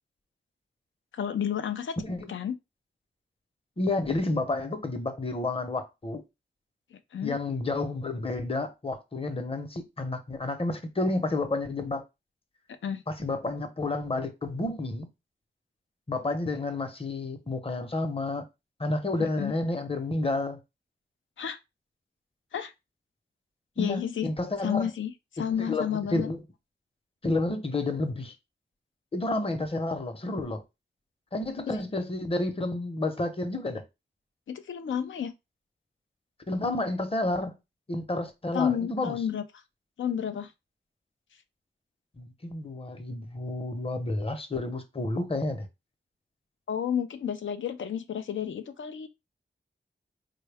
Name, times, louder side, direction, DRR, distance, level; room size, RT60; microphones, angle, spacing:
voice 1, 1.1-1.9 2.3-2.6 6.9-7.4 12.8-13.0 19.2-19.5 21.4-21.6 22.5-22.7 23.8-24.3 24.6-26.3 31.7-31.8 34.5-35.3 38.5-39.4 40.0-40.5 46.7-49.1, left 8 dB, 85° left, 0.4 m, -31 dB
voice 2, 2.0-2.3 3.8-6.2 7.2-12.0 13.1-15.1 16.1-18.4 18.8-20.6 23.8-24.9 25.4-26.4 27.2-28.3 29.1-30.6 31.3-33.8 36.5-37.6 37.9-39.2 42.2-45.7, left 2 dB, 30° left, 0.7 m, -30 dB
4.4 x 2.2 x 3.4 m
wide cardioid pair, 90°, 19 cm